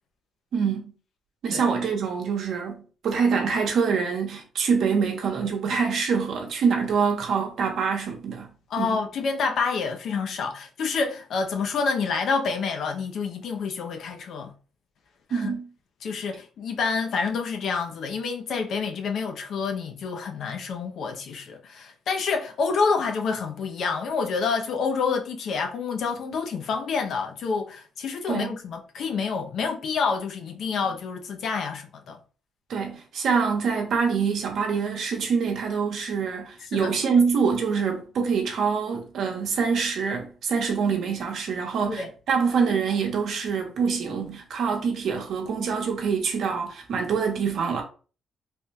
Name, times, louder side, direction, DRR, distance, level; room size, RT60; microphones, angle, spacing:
voice 1, 0.5-0.9 1.4-8.5 8.8-9.0 15.3-15.6 28.3-28.6 32.7-47.8, right 5 dB, 70° right, 0.9 m, -25 dB
voice 2, 8.7-14.5 15.3-15.6 16.0-32.2 36.7-36.9 41.9-42.1, left 5 dB, 70° left, 0.6 m, -28 dB
3.5 x 2.7 x 2.2 m
cardioid pair, 90°, 0 cm